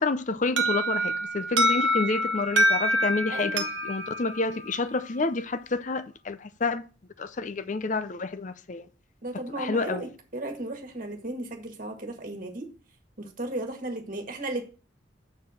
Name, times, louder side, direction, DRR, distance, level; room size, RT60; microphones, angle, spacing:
voice 1, 0.0-6.9 7.2-8.9 9.6-10.1, left 3 dB, 40° left, 0.5 m, -29 dB
Alarm, 0.6-5.4, equal, 65° right, 1.0 m, -26 dB
voice 2, 3.3-3.7 9.2-12.7 13.2-14.7, right 1 dB, 45° right, 1.7 m, -35 dB
7.3 x 4.5 x 6.4 m
head